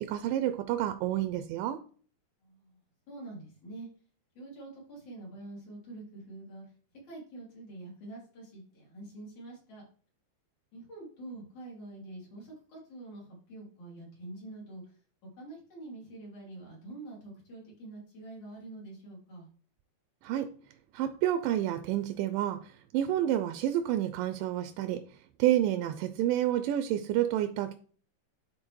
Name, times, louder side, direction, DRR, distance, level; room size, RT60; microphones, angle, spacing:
voice 1, 0.0-1.8 20.2-20.5 20.9-25.0 25.4-27.7, right 12 dB, 85° right, 9 dB, 2.2 m, -29 dB
voice 2, 2.4-2.8 3.1-3.9 4.3-6.6 7.0-9.9 10.7-15.0 15.4-19.5, right 2 dB, 60° left, -4 dB, 4.6 m, -46 dB
11.0 x 4.1 x 3.1 m, 0.43 s
omnidirectional pair, 3.9 m